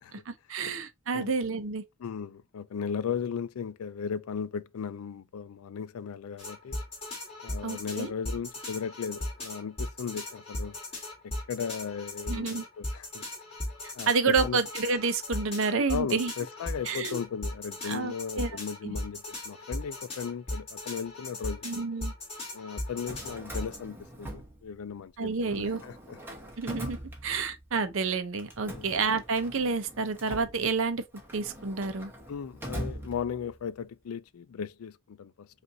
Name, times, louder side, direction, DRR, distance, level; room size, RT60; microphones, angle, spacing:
voice 1, 0.3-1.8 7.6-8.1 12.3-12.6 13.8-16.3 16.9-17.2 17.8-18.6 18.8-18.9 21.6-22.1 25.2-25.8 26.6-31.0 31.3-32.1, right 4 dB, 60° right, 0.6 m, -29 dB
voice 2, 2.0-6.8 7.4-10.8 11.2-13.2 13.9-14.6 15.9-21.6 22.5-26.2 28.6-28.9 32.3-35.5, left 7 dB, 75° left, 0.4 m, -36 dB
sound 1, 6.4-23.8, left 1 dB, 25° left, 2.1 m, -38 dB
Drawer open or close, 22.9-25.1 25.4-27.8 28.4-33.7, right 1 dB, 10° right, 0.9 m, -42 dB
5.3 x 2.5 x 2.8 m
head